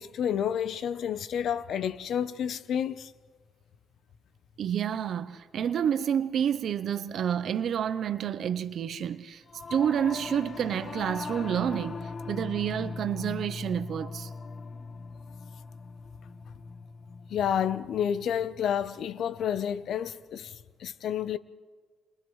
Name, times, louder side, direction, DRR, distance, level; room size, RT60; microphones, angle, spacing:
voice 1, 0.0-3.1 17.3-20.5 20.8-21.4, left 9 dB, 70° left, 0.7 m, -30 dB
voice 2, 4.6-9.4 9.7-14.3, right 9 dB, 65° right, 0.6 m, -29 dB
Singing / Musical instrument, 9.5-19.0, left 4 dB, 40° left, 1.0 m, -40 dB
29.0 x 28.0 x 3.2 m
cardioid pair, 90°, 0 cm